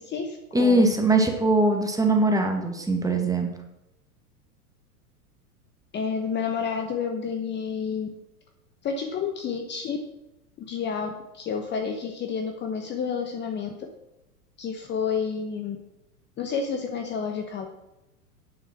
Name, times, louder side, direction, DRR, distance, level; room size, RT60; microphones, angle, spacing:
voice 1, 0.0-0.8 5.9-8.1 8.8-10.0 10.6-13.7 14.6-15.8 16.4-17.7, left 6 dB, 25° left, 4 dB, 1.1 m, -30 dB
voice 2, 0.5-3.5, right 2 dB, 5° right, 3 dB, 1.9 m, -21 dB
9.4 x 7.7 x 6.4 m, 0.92 s
figure-of-eight pair, 95°, 46 cm